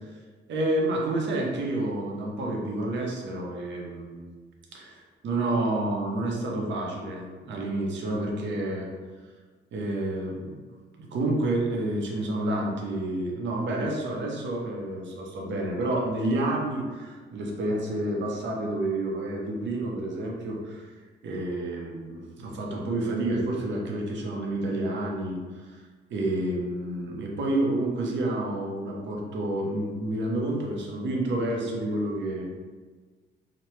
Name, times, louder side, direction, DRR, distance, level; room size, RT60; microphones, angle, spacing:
voice 1, 0.5-4.3 4.7-8.9 9.7-10.6 11.1-20.9 21.2-25.8 26.1-32.4, right 1 dB, 65° right, -1 dB, 0.7 m, -29 dB
2.9 x 2.1 x 3.1 m, 1.4 s
cardioid pair, 90°, 20 cm